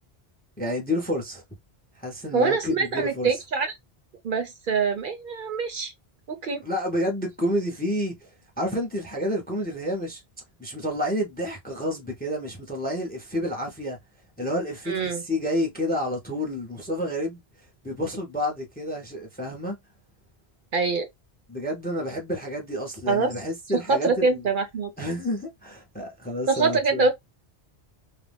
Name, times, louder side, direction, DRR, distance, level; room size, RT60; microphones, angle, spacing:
voice 1, 0.6-1.4 2.0-3.3 6.6-8.3 8.6-10.2 10.6-14.0 14.4-17.4 17.8-19.8 21.5-24.4 25.0-27.1, left 1 dB, 10° left, 0.5 m, -29 dB
voice 2, 2.3-3.7 4.2-5.9 6.3-6.6 14.9-15.2 20.7-21.1 23.1-23.3 23.7-24.9 26.5-27.1, right 4 dB, 60° right, 0.7 m, -24 dB
2.4 x 2.1 x 3.3 m
omnidirectional pair, 1.1 m